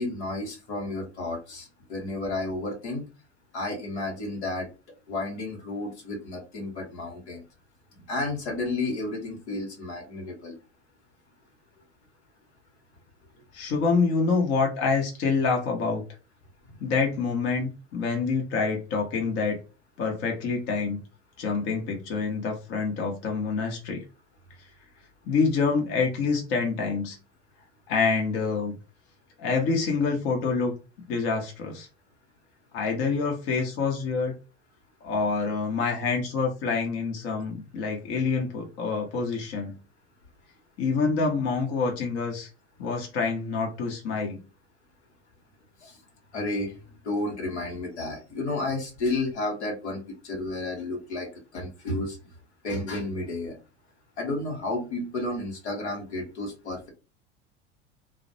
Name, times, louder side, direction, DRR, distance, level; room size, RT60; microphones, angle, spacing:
voice 1, 0.0-3.1 3.5-4.7 5.1-7.4 8.0-10.5 45.8-46.0 46.3-46.8 47.0-52.2 52.6-53.6 54.2-56.9, left 2 dB, 75° left, 0 dB, 1.1 m, -32 dB
voice 2, 13.5-16.0 16.8-19.6 20.0-21.0 21.4-24.0 25.3-27.2 27.9-28.8 29.4-30.7 31.1-31.9 32.7-34.3 35.0-39.7 40.8-42.5 42.8-44.4, left 4 dB, 45° left, 1 dB, 0.8 m, -26 dB
2.4 x 2.0 x 2.7 m, 0.31 s
figure-of-eight pair, 80°, 34 cm